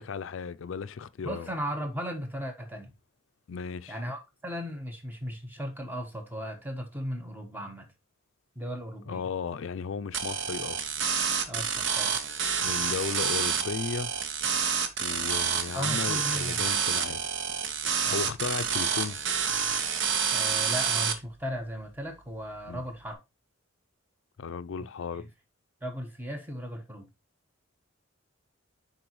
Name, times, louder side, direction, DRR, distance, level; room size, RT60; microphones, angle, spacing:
voice 1, 0.0-1.5 3.5-4.0 9.1-10.9 12.6-14.1 15.0-17.3 17.8-19.2 22.7-22.8 24.4-25.3, left 5 dB, 65° left, 0.4 m, -35 dB
voice 2, 1.2-2.9 3.9-7.9 8.5-9.3 11.4-12.2 15.7-16.8 18.1-18.3 20.3-23.2 25.1-25.3 25.8-27.1, equal, 10° right, 1.2 m, -36 dB
sound 1, 10.1-21.1, right 7 dB, 60° right, 0.8 m, -28 dB
10.0 x 4.0 x 3.0 m
head